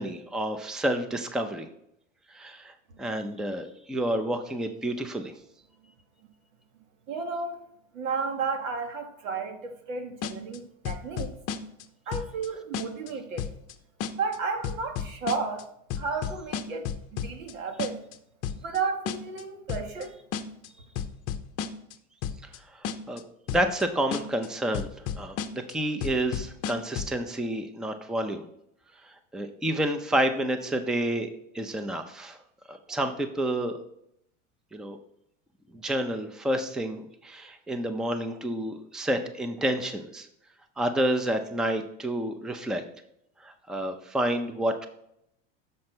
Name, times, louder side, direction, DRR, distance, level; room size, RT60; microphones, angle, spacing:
voice 1, 0.0-1.7 2.3-5.3 22.4-23.2 23.5-24.9 25.1-28.4 29.0-31.3 31.5-32.4 32.7-33.8 34.7-35.0 35.7-40.3 40.8-42.8 43.4-44.9, right 1 dB, ahead, 7 dB, 0.5 m, -29 dB
voice 2, 7.1-7.6 7.9-11.4 12.1-13.5 14.1-15.7 15.9-18.0 18.6-20.1, right 4 dB, 85° right, 4 dB, 1.6 m, -33 dB
sound 1, 10.2-10.6 10.8-11.8 12.1-12.5 12.7-13.1 13.4-13.7 14.0-14.4 14.6-15.6 15.9-17.5 17.8-18.1 18.4-18.8 19.1-19.4 19.7-20.0 20.3-20.7 21.0-21.9 22.2-22.6 22.8-23.2 23.5-23.8 24.1-24.5 24.7-25.7 26.0-27.2, left 8 dB, 40° left, 0.7 m, -32 dB
6.7 x 4.2 x 6.0 m, 0.76 s
hypercardioid pair, 105°, 39 cm